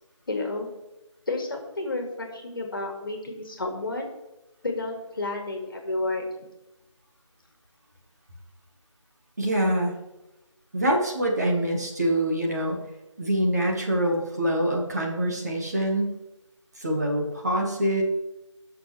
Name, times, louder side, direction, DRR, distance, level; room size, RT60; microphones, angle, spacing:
voice 1, 0.3-0.7 1.3-4.1 4.6-6.3, left 2 dB, 45° left, 2 dB, 2.1 m, -31 dB
voice 2, 9.4-10.0 10.7-12.8 13.2-16.2 16.8-18.0, right 1 dB, 35° right, 0 dB, 1.5 m, -25 dB
18.0 x 6.4 x 3.3 m, 0.99 s
figure-of-eight pair, 175°, 16 cm